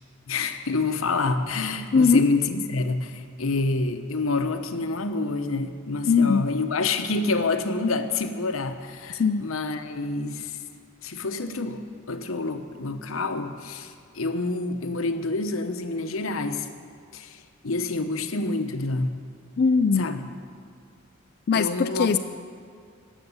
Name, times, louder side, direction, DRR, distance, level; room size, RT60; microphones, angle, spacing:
voice 1, 0.3-10.6 11.0-11.8 12.1-16.7 17.1-17.4 17.6-19.2 20.0-20.2 21.5-22.1, left 3 dB, 80° left, 8 dB, 0.9 m, -27 dB
voice 2, 1.9-2.2 6.1-6.5 9.2-9.4 19.6-20.0 21.5-22.2, left 5 dB, 50° left, 9 dB, 0.4 m, -20 dB
15.0 x 6.7 x 9.6 m, 2.1 s
head